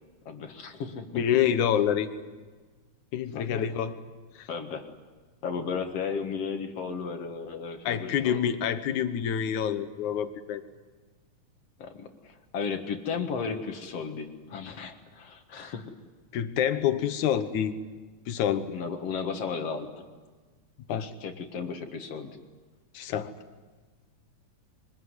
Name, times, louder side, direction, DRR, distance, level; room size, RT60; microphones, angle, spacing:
voice 1, 0.3-1.2 3.3-3.6 4.5-4.9 5.4-8.4 11.8-15.9 18.7-20.1 20.9-22.3, left 5 dB, 60° left, 6 dB, 2.6 m, -34 dB
voice 2, 1.1-2.1 3.1-4.0 4.4-4.5 7.9-10.6 16.3-17.7 18.3-18.7 20.9-21.1 22.9-23.3, left 9 dB, 90° left, 10 dB, 2.6 m, -27 dB
24.0 x 21.0 x 9.6 m, 1.4 s
omnidirectional pair, 3.3 m